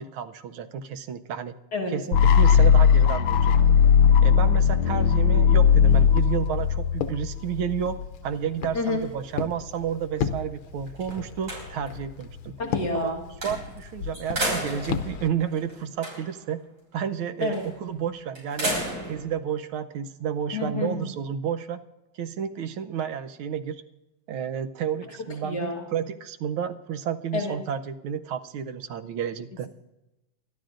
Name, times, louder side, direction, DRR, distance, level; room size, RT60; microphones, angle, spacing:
voice 1, 0.0-1.5 1.9-3.7 4.2-8.0 8.2-12.5 12.9-13.1 13.4-16.6 16.9-18.7 19.1-21.8 22.2-23.8 24.3-29.7, right 8 dB, 80° right, 9 dB, 1.6 m, -31 dB
sound 1, 2.1-8.0, left 7 dB, 70° left, 1.4 m, -18 dB
Walk footsteps, 5.9-15.3, left 7 dB, 90° left, 1.6 m, -36 dB
sound 2, 8.4-9.9 10.4-10.5 10.9-12.1 13.4-13.8 14.1-16.5 17.5-17.8 18.4-19.2, right 1 dB, 65° right, 6.2 m, -33 dB
voice 2, 12.6-13.2 17.4-17.6 20.5-21.0 25.4-25.8 27.3-27.6, left 3 dB, 55° left, 0 dB, 2.1 m, -28 dB
29.0 x 12.5 x 2.5 m, 0.98 s
omnidirectional pair, 2.3 m